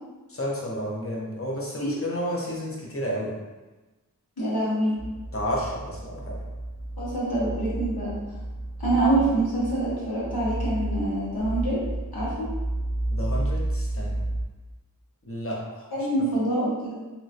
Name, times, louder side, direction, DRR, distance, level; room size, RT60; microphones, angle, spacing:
voice 1, 0.3-3.3 5.3-6.4 13.1-14.2 15.2-15.9, equal, 40° left, -3 dB, 0.8 m, -31 dB
voice 2, 4.4-4.9 7.0-8.1 8.8-11.8 12.1-12.5 15.9-16.9, right 2 dB, 85° left, -9 dB, 1.3 m, -25 dB
sound 1, 5.0-14.5, right 1 dB, 5° right, 0.3 m, -31 dB
3.1 x 2.9 x 2.5 m, 1.2 s
wide cardioid pair, 50°, 36 cm